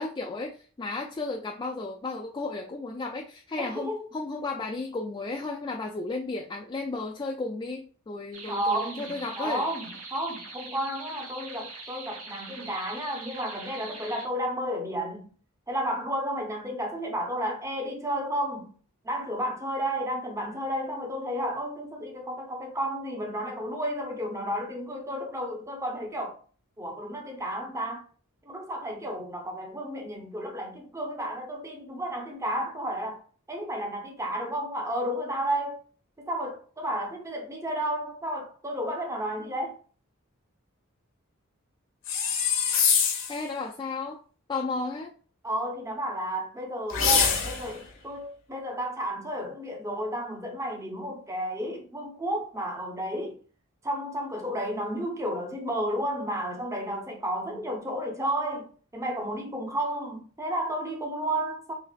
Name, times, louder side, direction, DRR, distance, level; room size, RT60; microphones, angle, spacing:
voice 1, 0.0-9.7 43.3-44.2 44.5-45.1, left 3 dB, 20° left, 0.3 m, -34 dB
voice 2, 3.6-4.1 8.5-15.3 15.7-18.8 19.0-26.4 26.8-28.0 28.5-33.2 33.5-35.8 36.2-39.8 45.4-53.4 53.8-61.7, equal, 15° right, 0.7 m, -32 dB
sound 1, 8.3-14.3, right 3 dB, 85° right, 0.9 m, -43 dB
sound 2, 42.0-43.4 46.9-47.8, left 6 dB, 60° left, 0.8 m, -24 dB
3.9 x 2.9 x 2.3 m
head